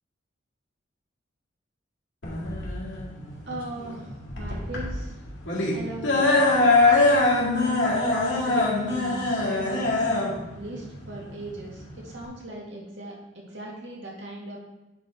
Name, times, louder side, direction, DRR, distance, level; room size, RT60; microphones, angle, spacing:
sound 1, 2.2-12.3, left 2 dB, 75° left, 2.2 m, -23 dB
voice 1, 3.5-5.1 5.7-6.6 7.6-10.3 10.6-14.6, right 1 dB, 70° right, -4 dB, 2.4 m, -38 dB
9.9 x 4.4 x 4.6 m, 0.98 s
head